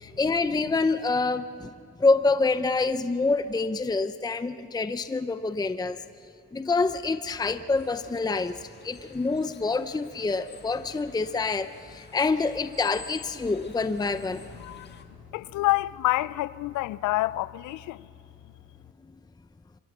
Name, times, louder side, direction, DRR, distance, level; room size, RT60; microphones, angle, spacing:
voice 1, 0.0-1.7 2.0-6.0 6.5-14.4, left 3 dB, 15° left, 0.6 m, -26 dB
sound 1, 7.7-15.0, left 4 dB, 35° left, 2.1 m, -50 dB
voice 2, 14.6-15.0 15.3-18.1, left 18 dB, 75° left, 0.5 m, -28 dB
25.0 x 22.5 x 6.0 m
cardioid pair, 90°, 30 cm